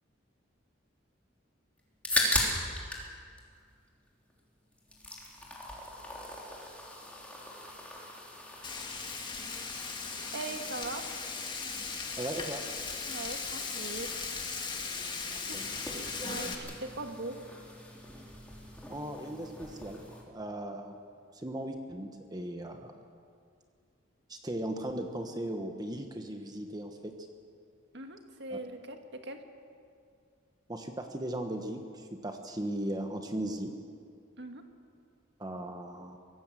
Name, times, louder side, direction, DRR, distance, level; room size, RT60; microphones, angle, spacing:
sound 1, 1.8-3.1 3.4-4.4 4.7-20.2, left 1 dB, 5° left, 3.4 m, -39 dB
Frying (food), 8.6-16.5, left 4 dB, 25° left, 2.0 m, -38 dB
voice 1, 10.3-11.1 13.0-14.1 15.5-15.6 16.3-17.4 27.9-29.4 34.4-34.6, right 2 dB, 60° right, 5 dB, 1.9 m, -40 dB
voice 2, 12.2-12.6 15.3-15.7 18.9-20.0 20.3-21.0 21.3-22.9 24.3-27.1 28.5-28.6 30.7-33.7 35.4-36.2, right 1 dB, 20° right, 5 dB, 1.2 m, -37 dB
23.5 x 17.5 x 7.5 m, 2.3 s
head